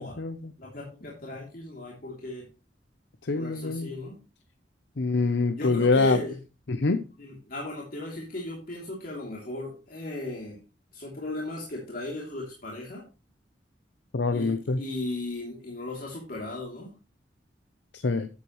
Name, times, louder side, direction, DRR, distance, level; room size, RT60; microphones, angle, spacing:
voice 1, 0.0-0.5 3.2-3.9 5.0-6.2 6.7-7.0 14.1-14.8 17.9-18.3, left 3 dB, 70° left, 10 dB, 0.7 m, -25 dB
voice 2, 0.6-2.4 3.3-4.2 5.6-6.3 7.2-10.6 10.9-13.0 14.3-16.9, left 2 dB, 50° left, -3 dB, 3.0 m, -36 dB
11.5 x 8.4 x 3.1 m, 0.31 s
head